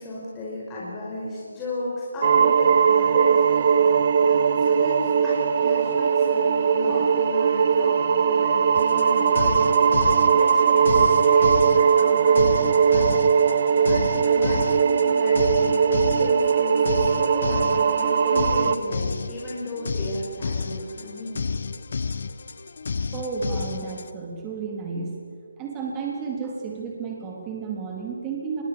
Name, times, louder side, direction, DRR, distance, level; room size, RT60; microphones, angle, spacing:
voice 1, 0.0-3.9 4.2-21.4, left 1 dB, 15° left, -7 dB, 5.1 m, -34 dB
sound 1, 2.2-18.8, right 6 dB, 40° right, 1.4 m, -20 dB
sound 2, 8.7-24.1, left 5 dB, 60° left, 1.1 m, -31 dB
voice 2, 23.1-25.1 25.6-28.6, right 5 dB, 15° right, -1 dB, 3.7 m, -32 dB
24.5 x 21.5 x 7.2 m, 2.2 s
figure-of-eight pair, 160°, 0 cm